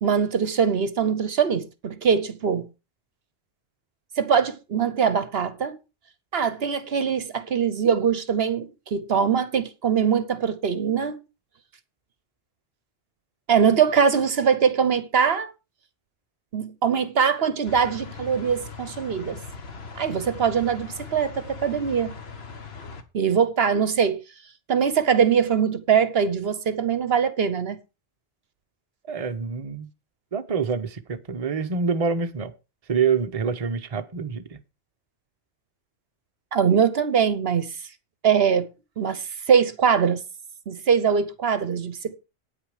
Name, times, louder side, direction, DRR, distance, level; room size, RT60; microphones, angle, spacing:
voice 1, 0.0-2.7 4.2-5.8 6.3-11.2 13.5-15.5 16.5-19.4 20.0-22.1 23.1-24.2 24.7-27.8 36.5-37.7 38.2-38.7 39.0-40.2 40.7-42.2, right 7 dB, 65° right, 1.1 m, -22 dB
sound 1, 17.6-23.0, left 5 dB, 65° left, 1.5 m, -40 dB
voice 2, 29.1-29.9 30.3-32.5 32.9-34.6, right 5 dB, 35° right, 0.9 m, -26 dB
9.3 x 8.7 x 4.9 m
omnidirectional pair, 1.1 m